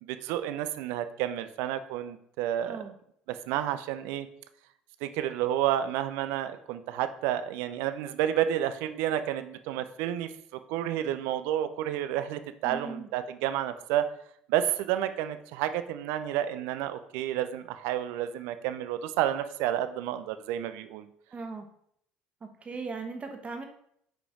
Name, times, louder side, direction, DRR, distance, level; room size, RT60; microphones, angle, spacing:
voice 1, 0.0-2.8 3.3-4.3 5.0-14.1 14.5-21.1, right 11 dB, 60° right, 11 dB, 0.6 m, -30 dB
voice 2, 2.6-2.9 12.6-13.1 21.3-21.7 22.4-23.6, right 4 dB, 30° right, 5 dB, 1.4 m, -38 dB
9.0 x 5.1 x 3.7 m, 0.69 s
figure-of-eight pair, 60°, 4 cm